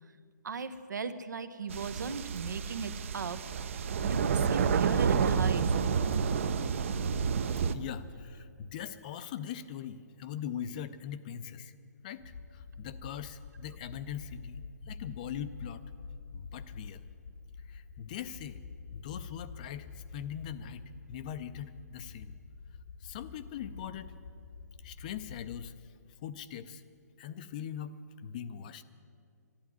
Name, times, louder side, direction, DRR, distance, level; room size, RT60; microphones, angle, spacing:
voice 1, 0.4-5.7, right 5 dB, 85° right, 11 dB, 1.0 m, -38 dB
sound 1, 1.7-7.7, right 6 dB, 45° right, 0.6 m, -29 dB
voice 2, 7.7-11.7 12.0-12.2 12.5-15.8 16.3-17.0 17.7-18.6 18.9-20.8 21.1-22.3 23.0-24.1 24.8-25.8 26.2-26.8 27.2-28.8, left 9 dB, 25° left, 13 dB, 0.4 m, -41 dB
sound 2, 12.2-25.7, left 5 dB, 55° left, 0.9 m, -47 dB
12.5 x 11.5 x 9.3 m, 2.3 s
hypercardioid pair, 165°, 10 cm